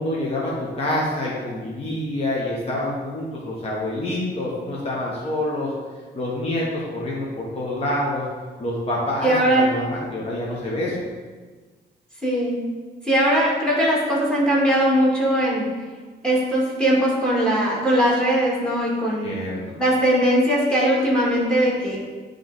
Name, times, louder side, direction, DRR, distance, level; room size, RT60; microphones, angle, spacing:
voice 1, 0.0-5.7 6.1-8.2 8.6-11.0 19.2-19.6, left 1 dB, 35° left, -5 dB, 1.3 m, -27 dB
voice 2, 9.2-9.7 12.2-12.6 13.0-15.7 16.2-19.3 19.8-22.0, equal, 5° left, -5 dB, 2.0 m, -20 dB
9.7 x 3.4 x 4.0 m, 1.4 s
cardioid pair, 130°, 19 cm